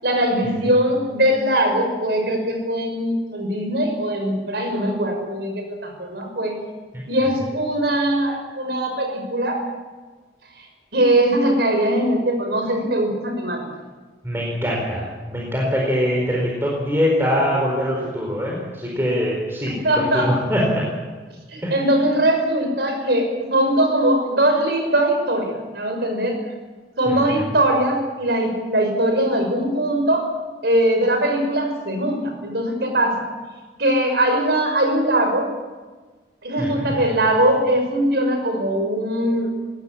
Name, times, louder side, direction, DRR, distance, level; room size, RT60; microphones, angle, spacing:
voice 1, 0.0-6.6 7.1-9.6 10.9-13.7 19.7-20.3 21.5-26.4 27.0-30.3 30.6-33.2 33.8-35.5 36.4-39.5, right 1 dB, 65° right, 4 dB, 5.9 m, -21 dB
voice 2, 14.2-20.8 21.6-21.8 27.1-27.5 36.6-37.1, equal, 15° right, -3 dB, 4.5 m, -23 dB
22.0 x 17.5 x 8.6 m, 1.3 s
head